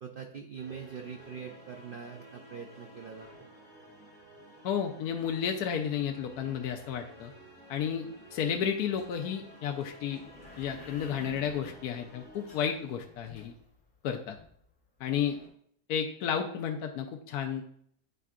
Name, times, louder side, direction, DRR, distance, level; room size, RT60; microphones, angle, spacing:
voice 1, 0.0-3.5, right 6 dB, 85° right, 3 dB, 0.4 m, -43 dB
sound 1, 0.5-12.6, right 1 dB, 50° right, 3.2 m, -53 dB
voice 2, 4.6-7.3 7.7-8.1 8.3-10.2 10.6-13.5 14.0-14.4 15.0-15.4 15.9-17.6, left 8 dB, 75° left, 4 dB, 1.1 m, -32 dB
sound 2, 7.5-7.6 7.8-8.2 9.0-15.5, left 3 dB, 35° left, 1.3 m, -54 dB
9.1 x 4.4 x 2.4 m, 0.65 s
omnidirectional pair, 1.7 m